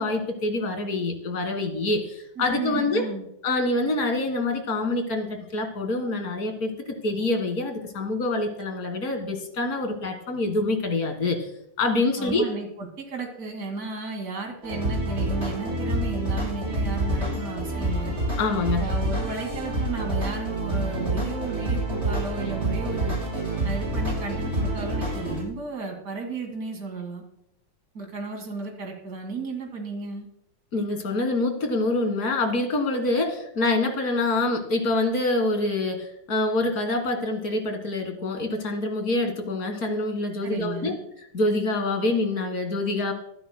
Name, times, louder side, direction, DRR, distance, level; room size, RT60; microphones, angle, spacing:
voice 1, 0.0-3.0 3.4-6.7 7.0-11.5 11.8-12.4 18.4-18.9 30.7-43.1, left 2 dB, 50° left, 6 dB, 2.2 m, -26 dB
voice 2, 2.4-3.3 12.2-18.2 18.8-23.1 23.6-27.2 27.9-30.3 40.4-41.0, right 3 dB, 50° right, 2 dB, 2.8 m, -34 dB
sound 1, 14.6-25.4, right 1 dB, 35° right, 5.4 m, -27 dB
24.0 x 12.5 x 2.2 m, 0.78 s
omnidirectional pair, 2.0 m